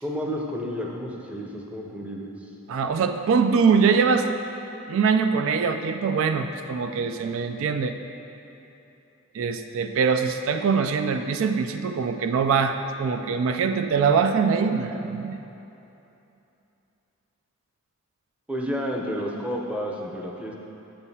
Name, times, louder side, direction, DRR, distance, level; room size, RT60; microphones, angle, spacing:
voice 1, 0.0-2.3 18.5-20.5, equal, 5° right, -2 dB, 0.6 m, -31 dB
voice 2, 2.7-4.3 4.9-8.0 9.3-15.4, right 5 dB, 70° right, 7 dB, 0.3 m, -23 dB
8.9 x 8.1 x 2.8 m, 2.9 s
head